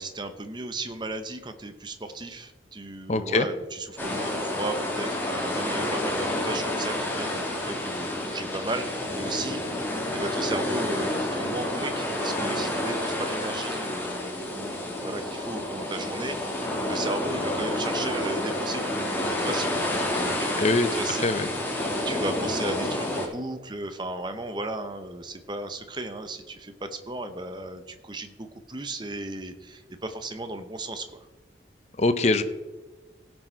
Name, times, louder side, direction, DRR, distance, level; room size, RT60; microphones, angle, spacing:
voice 1, 0.0-9.6 10.1-20.7 20.9-21.2 21.7-31.2, right 2 dB, 25° right, 8 dB, 0.8 m, -35 dB
voice 2, 3.1-3.4 20.6-20.9 21.2-21.5 32.0-32.4, left 2 dB, 35° left, 11 dB, 0.6 m, -22 dB
sound 1, 4.0-23.3, left 1 dB, 10° left, 1.8 m, -29 dB
16.5 x 6.3 x 4.6 m, 1.2 s
head